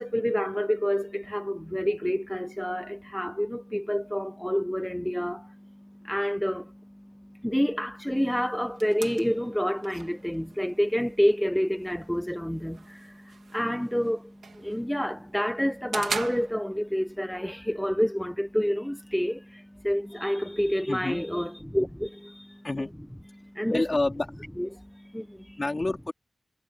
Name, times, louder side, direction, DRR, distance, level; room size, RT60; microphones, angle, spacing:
voice 1, 0.0-22.7 23.3-23.9 24.6-25.6, equal, 5° left, 0.9 m, -29 dB
sound 1, 8.2-17.2, right 5 dB, 90° right, 2.9 m, -42 dB
voice 2, 20.9-21.2 22.6-22.9 23.7-24.3 25.6-26.1, left 2 dB, 35° left, 4.2 m, -28 dB
wide cardioid pair, 70°, 0 cm